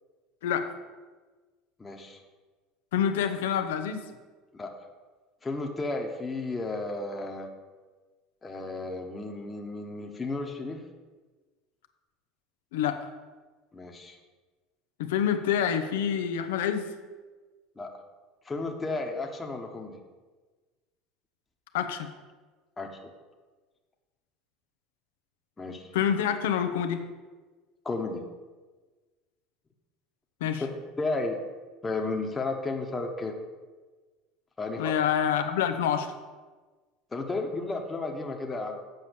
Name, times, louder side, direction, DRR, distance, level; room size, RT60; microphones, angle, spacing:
voice 1, 1.8-2.2 4.5-4.7 5.4-7.5 8.4-10.8 13.7-14.2 17.8-17.9 18.4-20.0 22.8-23.0 25.6-25.9 27.8-28.3 30.5-30.7 31.0-31.4 31.8-33.3 34.6-34.9 37.1-38.8, left 3 dB, 20° left, 1 dB, 1.1 m, -33 dB
voice 2, 2.9-4.0 12.7-13.0 15.0-16.8 21.7-22.1 25.9-27.0 30.4-30.6 34.8-36.1, left 8 dB, 85° left, 9 dB, 0.8 m, -27 dB
8.1 x 5.3 x 7.0 m, 1.3 s
supercardioid pair, 95°, 0 cm